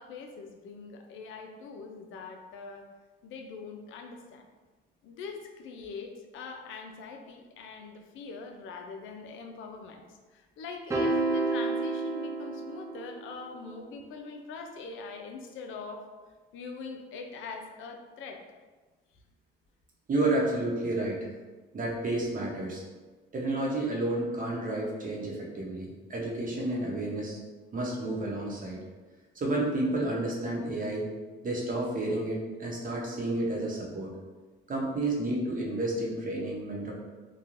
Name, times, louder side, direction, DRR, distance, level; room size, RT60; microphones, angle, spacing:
voice 1, 0.0-2.9 3.2-4.5 5.0-16.0 16.5-18.4, left 4 dB, 80° left, 4 dB, 0.4 m, -43 dB
sound 1, 10.9-13.3, right 3 dB, 15° right, 0.5 m, -30 dB
voice 2, 20.1-21.2 21.7-22.8 23.3-27.4 27.7-28.8 29.3-31.1 31.4-34.1 34.7-36.9, right 2 dB, 45° right, -3 dB, 0.8 m, -31 dB
3.0 x 2.2 x 2.5 m, 1.3 s
cardioid pair, 90°, 20 cm